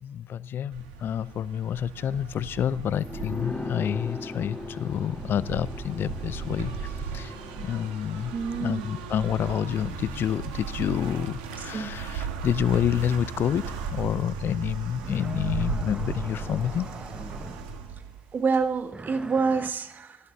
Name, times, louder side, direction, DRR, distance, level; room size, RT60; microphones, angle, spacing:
voice 1, 0.0-8.3 8.6-16.9, left 9 dB, 60° left, 0.5 m, -28 dB
sound 1, 0.7-18.9, right 5 dB, 85° right, 1.6 m, -37 dB
sound 2, 3.0-12.3 12.6-12.7, left 2 dB, 30° left, 2.7 m, -41 dB
voice 2, 8.3-8.9 11.7-12.1 18.3-20.2, right 5 dB, 45° right, 1.7 m, -27 dB
sound 3, 14.9-18.0 18.9-19.7, right 3 dB, 25° right, 0.9 m, -41 dB
20.0 x 15.5 x 2.7 m
hypercardioid pair, 50°, 4 cm